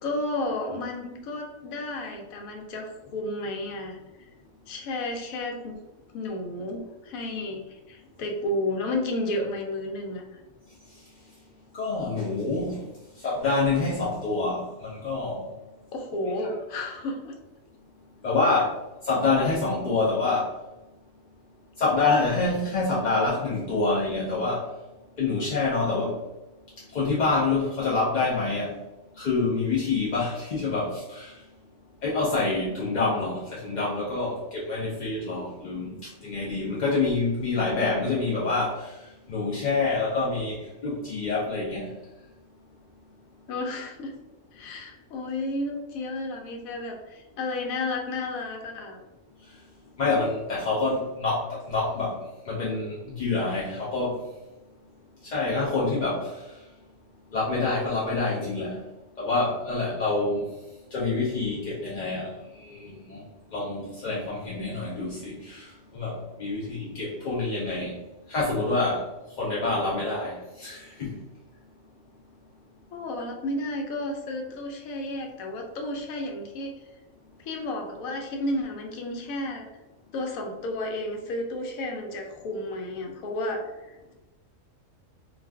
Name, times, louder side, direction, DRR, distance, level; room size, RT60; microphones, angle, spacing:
voice 1, 0.0-4.0 4.7-5.8 6.1-10.2 15.9-17.3 43.5-44.1 44.5-49.0 72.9-76.7 77.4-79.6 80.1-84.1, left 2 dB, 90° left, 2 dB, 1.1 m, -32 dB
voice 2, 11.7-12.8 13.2-15.4 18.2-18.7 19.0-20.5 21.8-24.7 25.2-26.2 26.9-28.8 29.2-31.3 32.0-36.0 36.2-39.0 39.3-41.9 50.0-52.2 52.5-54.2 55.2-56.3 57.3-58.8 59.2-60.5 60.9-62.3 62.6-63.2 63.5-68.0 68.3-69.1 69.4-71.2, left 3 dB, 55° left, -6 dB, 0.5 m, -27 dB
2.4 x 2.4 x 3.3 m, 1.0 s
omnidirectional pair, 1.4 m